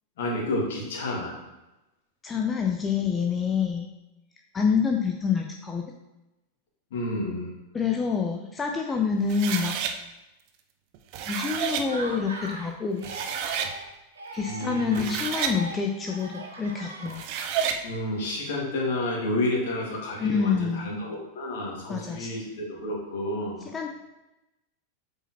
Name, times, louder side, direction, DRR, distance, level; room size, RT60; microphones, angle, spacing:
voice 1, 0.2-1.4 6.9-7.5 14.4-15.1 17.8-23.6, left 1 dB, 55° left, -2 dB, 1.9 m, -30 dB
voice 2, 2.2-3.9 4.5-5.8 7.7-9.8 11.3-13.1 14.3-17.2 20.2-20.9 21.9-22.3 23.7-23.9, left 6 dB, 15° left, 2 dB, 0.5 m, -27 dB
sound 1, 9.3-9.9 10.9-11.9 12.7-12.8 13.0-13.7 14.8-15.6 17.0-17.8, right 7 dB, 45° right, 0.6 m, -30 dB
Laughter, 11.8-12.7 13.0-13.9 14.2-17.5, right 2 dB, 70° right, 1.1 m, -40 dB
7.7 x 4.9 x 2.9 m, 0.97 s
figure-of-eight pair, 90°, 0 cm